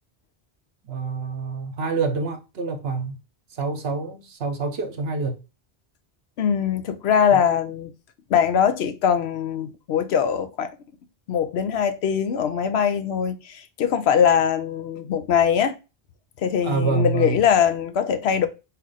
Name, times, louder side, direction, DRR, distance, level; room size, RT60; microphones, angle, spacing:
voice 1, 0.9-3.2 3.5-5.3 7.3-7.4 16.6-17.4, right 4 dB, 70° right, 1.0 m, -26 dB
voice 2, 6.4-7.9 8.3-10.7 11.3-15.8 16.4-18.5, left 8 dB, 75° left, 0.9 m, -22 dB
4.2 x 2.5 x 3.9 m
omnidirectional pair, 1.1 m